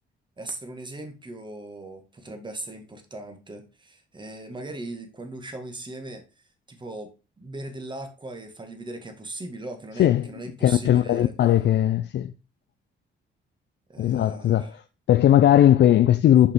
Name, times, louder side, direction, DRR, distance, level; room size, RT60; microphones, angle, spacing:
voice 1, 0.4-7.1 7.4-11.3 13.9-14.7, right 2 dB, 25° right, 1.9 m, -39 dB
voice 2, 10.6-12.3 14.0-14.8 15.1-16.5, left 11 dB, 65° left, 0.5 m, -18 dB
6.5 x 5.6 x 4.5 m
cardioid pair, 90°, 20 cm